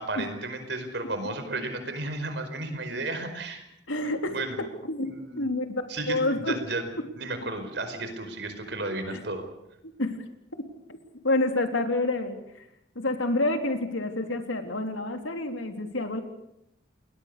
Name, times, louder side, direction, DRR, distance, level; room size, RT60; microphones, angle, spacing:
voice 1, 0.0-3.6 4.3-4.7 5.0-5.5 5.9-6.9 7.1-9.4, right 2 dB, 60° right, 8 dB, 4.9 m, -33 dB
voice 2, 3.9-4.4 4.8-5.1 5.4-6.6 9.1-9.2 10.0-10.2 11.2-12.4 13.0-16.2, left 2 dB, 90° left, 6 dB, 3.4 m, -28 dB
29.0 x 21.0 x 6.8 m, 0.83 s
head